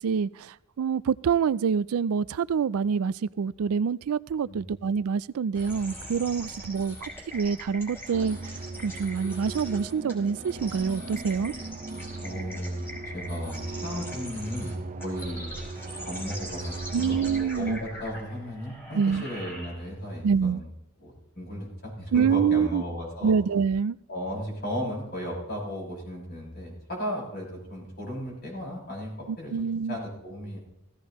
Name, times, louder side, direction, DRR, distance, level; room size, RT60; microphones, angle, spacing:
voice 1, 0.0-8.4 8.8-11.5 16.9-17.8 18.9-19.2 20.2-20.6 22.1-22.8 23.2-24.0 29.5-30.0, right 6 dB, 80° right, 0.4 m, -26 dB
sound 1, 5.5-20.1, equal, 10° left, 3.7 m, -42 dB
sound 2, 8.1-17.4, right 3 dB, 35° right, 0.6 m, -39 dB
voice 2, 12.2-15.5 16.0-20.7 21.0-23.3 24.1-30.6, equal, 45° left, 6.2 m, -35 dB
16.5 x 15.5 x 3.0 m
head